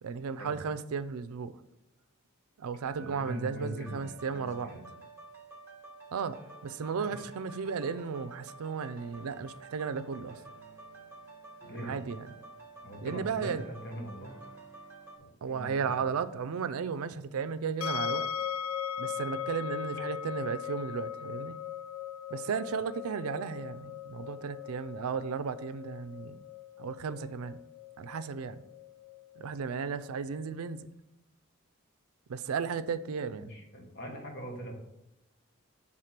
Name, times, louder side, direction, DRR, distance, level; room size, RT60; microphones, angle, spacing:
voice 1, 0.0-1.5 2.6-4.8 6.1-10.4 11.8-12.3 13.0-13.7 15.4-18.3 19.0-21.6 22.3-26.4 26.8-27.6 28.0-28.6 29.4-30.9 32.3-33.5, right 6 dB, 85° right, 0.4 m, -35 dB
Keyboard (musical), 2.8-4.8 8.0-8.2, right 8 dB, 45° right, 0.6 m, -57 dB
voice 2, 3.0-4.9 7.0-7.2 11.7-12.0 12.8-14.4 15.2-16.1 33.4-34.7, equal, 50° left, 1.4 m, -42 dB
sound 1, 3.8-15.2, right 2 dB, 10° right, 1.0 m, -50 dB
sound 2, 17.8-30.8, left 9 dB, 80° left, 0.5 m, -39 dB
6.5 x 3.6 x 5.8 m
head